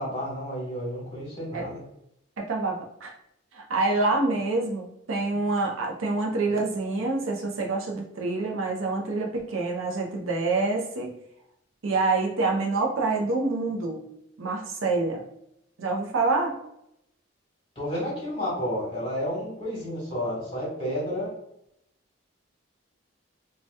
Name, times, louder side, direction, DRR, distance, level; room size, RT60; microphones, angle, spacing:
voice 1, 0.0-1.8 17.7-21.3, equal, 25° left, -5 dB, 1.0 m, -31 dB
voice 2, 2.4-3.1 3.5-11.1 11.8-14.1 14.4-15.2 15.8-16.6, right 3 dB, 85° right, 0 dB, 0.5 m, -27 dB
2.8 x 2.2 x 3.2 m, 0.78 s
head